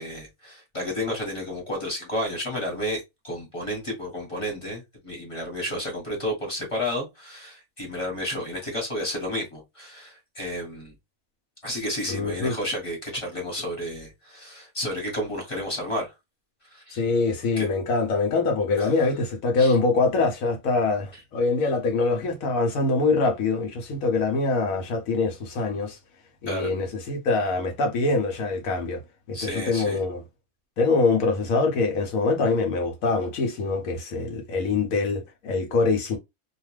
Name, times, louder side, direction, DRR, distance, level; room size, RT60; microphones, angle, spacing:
voice 1, 0.0-10.9 11.6-16.1 16.7-17.0 17.6-17.7 18.8-18.9 19.6-19.8 26.5-26.7 29.3-30.0, left 1 dB, 25° left, 1.2 m, -31 dB
voice 2, 12.1-12.5 16.9-26.0 26.4-29.0 29.3-30.2 30.8-36.2, left 3 dB, 75° left, 1.1 m, -24 dB
2.5 x 2.3 x 3.1 m
omnidirectional pair, 1.5 m